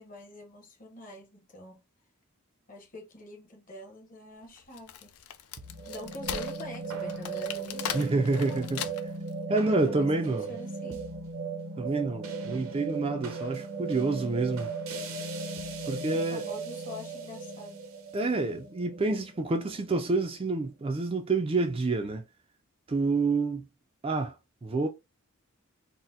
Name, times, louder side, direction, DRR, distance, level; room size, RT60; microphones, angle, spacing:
voice 1, 0.0-1.8 2.7-5.1 5.9-8.9 9.5-11.0 16.1-17.8, left 1 dB, 40° left, 1.0 m, -45 dB
Wood, 4.6-9.3, left 9 dB, 85° left, 0.5 m, -38 dB
sound 1, 5.6-20.0, right 4 dB, 70° right, 0.6 m, -37 dB
voice 2, 7.9-8.8 9.5-10.5 11.8-14.7 15.9-16.4 18.1-22.2 22.9-23.7 24.0-24.3 24.6-24.9, right 3 dB, 25° right, 0.3 m, -28 dB
4.0 x 2.1 x 2.6 m
head